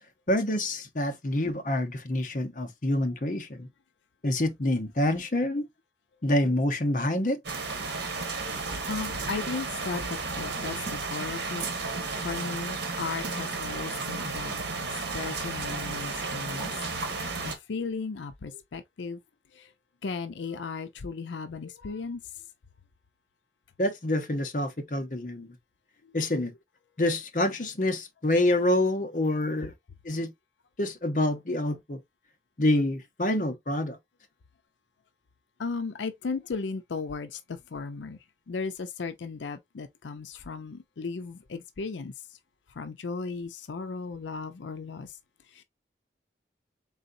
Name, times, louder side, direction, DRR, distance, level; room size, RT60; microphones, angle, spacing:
voice 1, 0.3-3.7 4.2-5.7 6.2-7.4 23.8-25.5 26.1-26.5 27.0-29.7 30.0-30.3 30.8-32.0 32.6-34.0, left 1 dB, 45° left, 0.8 m, -27 dB
sound 1, 7.4-17.5, right 3 dB, 70° right, 1.2 m, -33 dB
voice 2, 8.9-11.6 12.2-14.6 15.1-16.7 17.1-19.2 19.5-19.7 20.0-22.2 35.6-38.2 38.5-42.1 42.8-45.1 45.5-45.6, left 4 dB, 90° left, 0.5 m, -36 dB
4.0 x 3.8 x 2.6 m
head